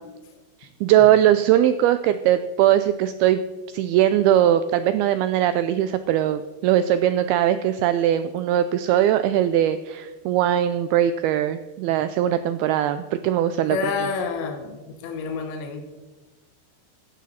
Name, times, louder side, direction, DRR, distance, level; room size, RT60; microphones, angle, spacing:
voice 1, 0.6-3.4 3.7-13.8, right 11 dB, 90° right, 11 dB, 2.2 m, -20 dB
voice 2, 13.7-15.8, left 5 dB, 85° left, 4 dB, 3.5 m, -28 dB
16.5 x 12.5 x 4.2 m, 1.2 s
omnidirectional pair, 5.0 m